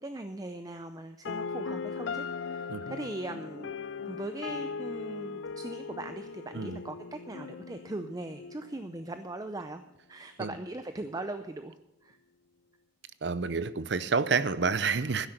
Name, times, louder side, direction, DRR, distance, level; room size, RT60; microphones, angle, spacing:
voice 1, 0.0-3.7 4.1-9.8 10.1-11.8 12.0-12.2, right 2 dB, 20° right, 8 dB, 0.6 m, -40 dB
sound 1, 1.3-9.3, left 5 dB, 85° left, 0.5 m, -39 dB
voice 2, 13.2-15.3, right 5 dB, 70° right, 14 dB, 0.7 m, -29 dB
12.0 x 10.5 x 6.6 m, 0.84 s
head